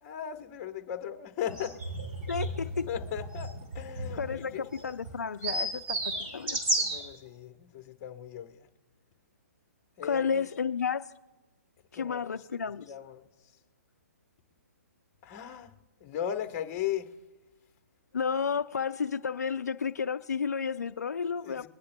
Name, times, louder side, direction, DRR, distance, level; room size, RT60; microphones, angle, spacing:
voice 1, 0.0-1.7 2.9-4.7 6.8-8.7 10.0-10.5 11.9-12.4 12.8-13.2 15.2-15.7 16.0-17.1 21.4-21.7, left 10 dB, 30° left, 1.1 m, -37 dB
sound 1, 1.5-7.1, right 1 dB, 45° right, 2.8 m, -33 dB
voice 2, 2.3-2.9 4.2-6.6 10.0-11.1 11.9-12.9 18.1-21.7, left 6 dB, 80° left, 0.4 m, -32 dB
22.0 x 10.0 x 2.2 m
figure-of-eight pair, 130°, 9 cm